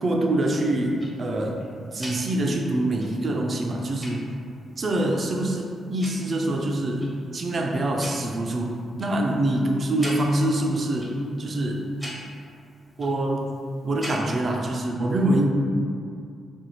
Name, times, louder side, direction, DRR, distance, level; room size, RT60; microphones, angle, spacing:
voice 1, 0.0-1.6 1.9-4.3 4.8-7.1 7.3-11.8 13.0-13.5 13.8-15.5, right 1 dB, 50° right, 1 dB, 0.4 m, -25 dB
Tick-tock, 0.6-14.6, equal, 10° left, 1.0 m, -44 dB
2.5 x 2.3 x 2.9 m, 2.3 s
supercardioid pair, 50°, 0 cm